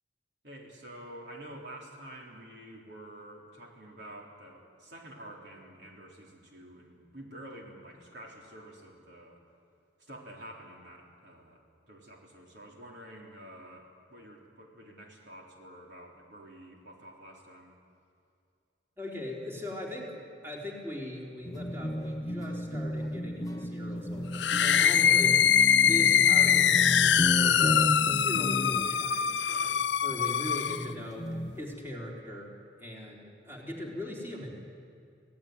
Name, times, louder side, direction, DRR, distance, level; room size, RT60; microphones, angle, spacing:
voice 1, 0.4-9.4 10.0-11.6 11.9-17.7, right 1 dB, 65° right, -1 dB, 3.8 m, -48 dB
voice 2, 19.0-25.5 25.8-32.5 32.8-34.5, left 1 dB, 15° right, -2 dB, 3.7 m, -40 dB
sound 1, 21.4-29.1 30.1-30.2 30.6-31.7, equal, 20° left, 0.7 m, -34 dB
sound 2, 24.3-30.9, left 8 dB, 70° left, 0.6 m, -23 dB
26.5 x 17.0 x 9.6 m, 2.4 s
head